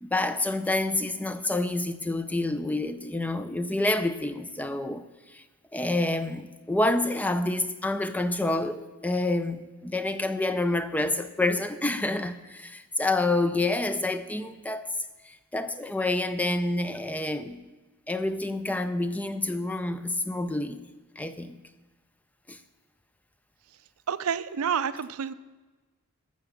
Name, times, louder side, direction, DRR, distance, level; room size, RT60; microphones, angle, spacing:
voice 1, 0.0-5.1 5.3-5.4 5.7-14.9 15.2-17.6 18.1-20.8 21.2-21.6 22.5-22.6, left 2 dB, 5° left, 11 dB, 0.4 m, -28 dB
voice 2, 24.1-25.3, right 7 dB, 75° right, 14 dB, 0.5 m, -29 dB
12.5 x 6.9 x 7.0 m, 1.2 s
head